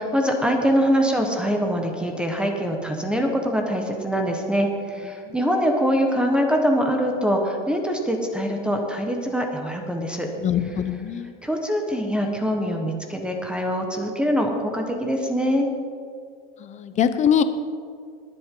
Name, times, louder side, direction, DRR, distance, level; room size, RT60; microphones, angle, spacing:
voice 1, 0.0-10.3 11.4-15.7, equal, 5° right, 2 dB, 1.2 m, -23 dB
voice 2, 10.4-11.3 16.6-17.4, left 8 dB, 25° left, 11 dB, 0.7 m, -22 dB
22.0 x 7.8 x 3.8 m, 2.2 s
supercardioid pair, 135°, 30 cm